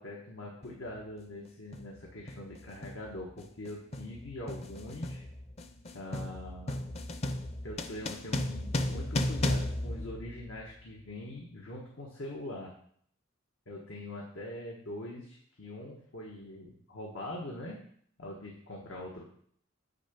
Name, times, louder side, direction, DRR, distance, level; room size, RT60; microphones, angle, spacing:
voice 1, 0.0-5.2 5.9-6.8 7.6-12.7 13.7-17.8 18.2-19.2, left 1 dB, 90° left, -2 dB, 1.5 m, -43 dB
sound 1, 0.6-0.8 1.7-2.0 2.3-10.8, left 1 dB, 30° left, 0.6 m, -35 dB
9.5 x 3.9 x 7.0 m, 0.63 s
head